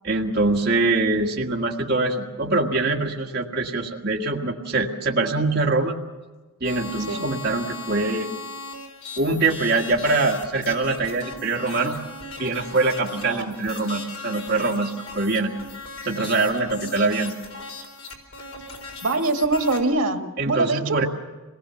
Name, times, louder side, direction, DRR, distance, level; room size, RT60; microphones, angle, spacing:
voice 1, 0.0-6.0 6.6-8.3 9.2-12.0 12.4-15.5 16.0-17.3 20.4-21.0, right 3 dB, 45° right, -1 dB, 1.8 m, -23 dB
sound 1, 6.6-19.8, left 3 dB, 75° left, 4.1 m, -38 dB
voice 2, 19.0-21.0, right 2 dB, 75° right, 5 dB, 1.9 m, -23 dB
26.5 x 19.5 x 7.1 m, 1.3 s
head